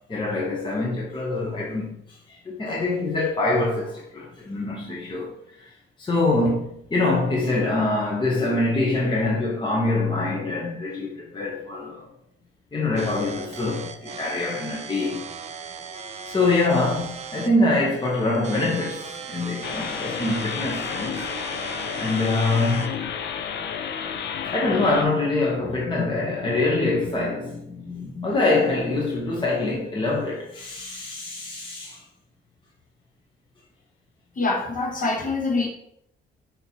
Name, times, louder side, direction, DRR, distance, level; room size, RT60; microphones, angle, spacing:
voice 1, 0.1-5.7 6.0-12.1 12.7-15.2 16.2-21.2 22.0-23.0 24.4-32.0, left 2 dB, 25° left, 0.8 m, -25 dB
sound 1, 13.0-23.0, right 6 dB, 35° right, 0.4 m, -38 dB
sound 2, 19.6-25.0, left 7 dB, 60° left, 0.4 m, -31 dB
voice 2, 34.4-35.7, left 3 dB, 40° left, 1.1 m, -24 dB
5.7 x 2.7 x 2.8 m
cardioid pair, 90°, 20 cm